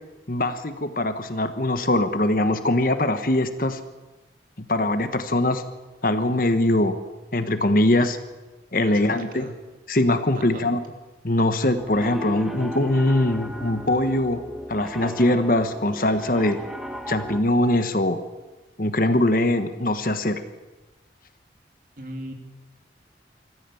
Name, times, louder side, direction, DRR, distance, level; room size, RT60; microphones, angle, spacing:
voice 1, 0.3-3.8 4.7-5.6 6.0-7.0 7.3-8.2 8.7-9.5 9.9-10.8 11.2-14.4 14.7-16.6 17.1-18.2 18.8-20.4, left 1 dB, 50° left, 9 dB, 1.3 m, -22 dB
voice 2, 8.8-9.6 10.3-10.7 22.0-22.3, right 1 dB, 50° right, 3 dB, 2.9 m, -38 dB
Piano, 11.8-17.4, equal, ahead, 1.6 m, -35 dB
25.5 x 14.0 x 7.2 m, 1.2 s
head